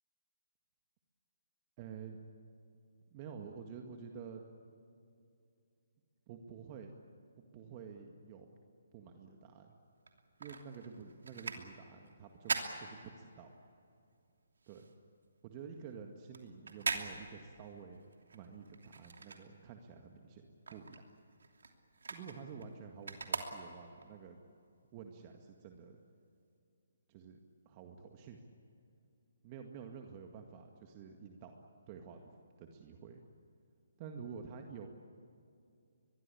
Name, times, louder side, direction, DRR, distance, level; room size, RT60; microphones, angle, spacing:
voice 1, 1.8-2.2 3.1-4.4 6.3-7.0 7.5-8.5 8.9-9.8 10.4-13.5 14.7-14.9 15.4-18.0 18.3-21.0 22.1-24.4 24.9-26.0 27.1-27.4 27.7-28.4 29.4-31.5 31.9-33.2 34.0-35.0, right 6 dB, 30° right, 3 dB, 1.9 m, -50 dB
sound 1, 10.0-13.7 14.0-20.0 20.3-24.1 24.6-24.7, right 4 dB, 75° right, 2.9 m, -42 dB
23.5 x 22.0 x 8.6 m, 2.5 s
figure-of-eight pair, 145°, 0 cm